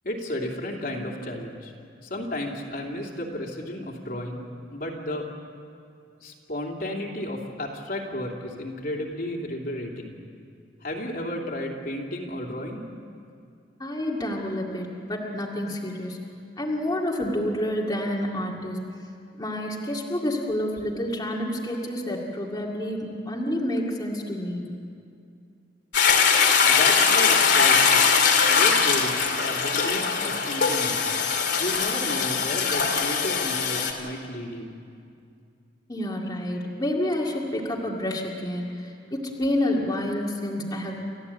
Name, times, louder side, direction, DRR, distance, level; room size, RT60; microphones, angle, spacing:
voice 1, 0.0-1.7 2.0-5.3 6.2-10.2 10.8-12.9 26.6-28.1 28.5-31.0 31.6-34.8, left 1 dB, 55° left, 0 dB, 2.9 m, -33 dB
voice 2, 13.8-16.2 16.6-18.8 19.4-24.7 35.9-41.0, left 1 dB, 20° left, -3 dB, 2.2 m, -29 dB
Toilet flush, 25.9-33.9, left 6 dB, 70° left, 2.6 m, -21 dB
29.5 x 14.0 x 8.6 m, 2.4 s
head